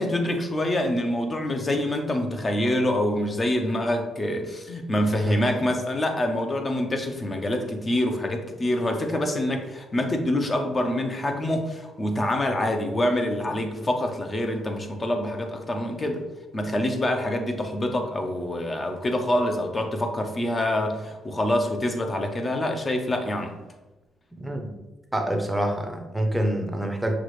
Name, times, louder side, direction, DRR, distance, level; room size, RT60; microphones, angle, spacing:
voice 1, 0.0-16.2 16.5-23.6, left 1 dB, 30° left, 4 dB, 0.7 m, -26 dB
voice 2, 5.3-5.6 24.4-24.7 25.1-27.2, right 1 dB, 10° right, 3 dB, 0.7 m, -27 dB
5.9 x 2.4 x 3.2 m, 1.0 s
cardioid pair, 90°, 0 cm